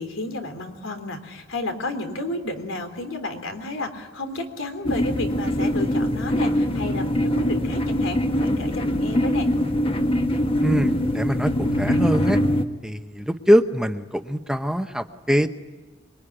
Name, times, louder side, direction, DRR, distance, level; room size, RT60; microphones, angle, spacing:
voice 1, 0.0-9.5, left 2 dB, 85° left, 7 dB, 3.5 m, -32 dB
sound 1, 4.8-12.6, equal, 30° left, 1.4 m, -23 dB
voice 2, 10.6-12.4 12.8-15.5, equal, 5° right, 7 dB, 0.9 m, -23 dB
25.5 x 23.0 x 10.0 m, 1.2 s
head